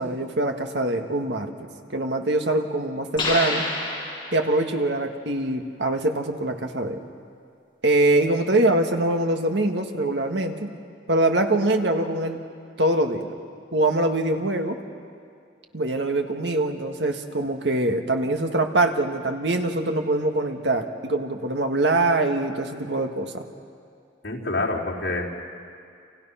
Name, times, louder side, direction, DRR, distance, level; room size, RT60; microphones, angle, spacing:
voice 1, 0.0-1.5 1.9-3.6 4.3-7.0 7.8-10.7 11.1-12.4 12.8-13.3 13.7-14.8 15.7-23.4, right 2 dB, 70° right, 4 dB, 1.8 m, -23 dB
sound 1, 3.2-4.7, left 2 dB, 25° left, 7.2 m, -28 dB
voice 2, 24.2-25.3, left 2 dB, 75° left, -6 dB, 4.4 m, -27 dB
30.0 x 27.5 x 5.8 m, 2.4 s
head